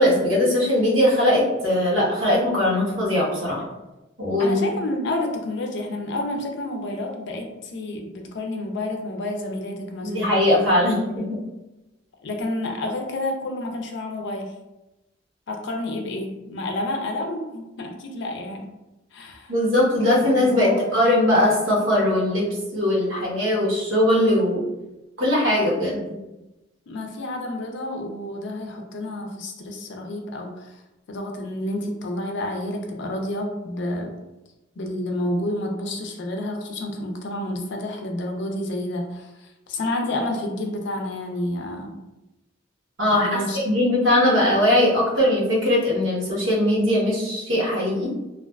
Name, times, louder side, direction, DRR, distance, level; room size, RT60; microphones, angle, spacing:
voice 1, 0.0-3.7 4.2-4.6 10.0-11.2 19.5-22.5 22.7-24.6 25.2-26.0 43.0-48.1, left 1 dB, 80° right, -5 dB, 1.0 m, -20 dB
voice 2, 4.4-10.3 11.2-11.3 12.2-14.5 15.5-18.7 19.1-19.5 20.3-21.1 26.9-30.8 31.1-34.1 34.8-42.0 43.1-43.6, left 1 dB, 65° left, 3 dB, 0.4 m, -30 dB
2.4 x 2.3 x 2.2 m, 1.0 s
head